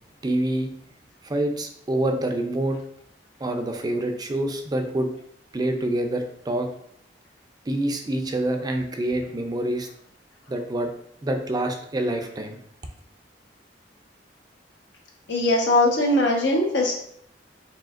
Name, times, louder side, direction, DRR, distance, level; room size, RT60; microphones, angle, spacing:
voice 1, 0.2-0.7 1.2-2.8 3.4-5.1 5.5-6.7 7.7-9.9 10.5-10.9 11.2-12.6, right 1 dB, 25° right, 5 dB, 0.4 m, -26 dB
voice 2, 15.3-16.9, left 1 dB, 85° left, -1 dB, 1.1 m, -20 dB
4.8 x 3.5 x 2.5 m, 0.68 s
head